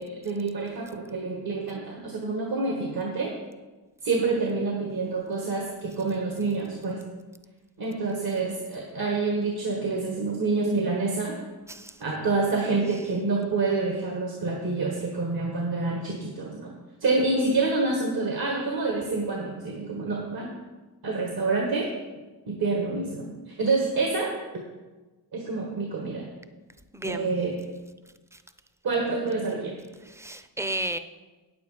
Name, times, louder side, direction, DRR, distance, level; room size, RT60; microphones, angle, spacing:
voice 1, 0.0-3.3 4.0-7.0 7.8-11.4 12.0-16.7 17.0-20.5 21.0-21.9 22.5-24.3 25.3-26.3 27.0-27.5 28.8-29.7, right 3 dB, 65° right, 0 dB, 1.6 m, -27 dB
voice 2, 11.7-12.0 26.9-27.3 28.3-28.4 30.0-31.0, right 1 dB, 5° right, 10 dB, 0.6 m, -33 dB
9.0 x 8.1 x 5.0 m, 1.2 s
cardioid pair, 75°, 39 cm